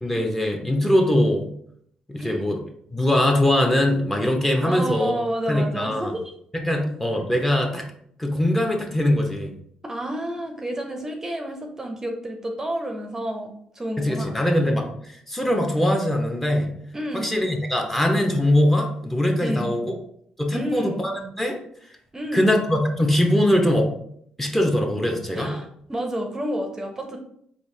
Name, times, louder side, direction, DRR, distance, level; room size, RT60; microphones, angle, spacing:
voice 1, 0.0-1.5 2.1-2.6 2.9-5.2 5.5-6.1 6.5-7.8 8.2-9.5 14.0-16.7 17.1-19.9 20.4-21.6 22.3-23.9 24.4-25.5, left 1 dB, 10° left, 2 dB, 0.8 m, -22 dB
voice 2, 4.6-6.2 6.6-6.8 9.8-14.4 16.9-17.4 19.4-19.7 20.5-21.0 22.1-22.6 25.3-27.2, right 1 dB, 20° right, 3 dB, 0.6 m, -30 dB
4.0 x 2.7 x 3.2 m, 0.68 s
cardioid pair, 75°, 2 cm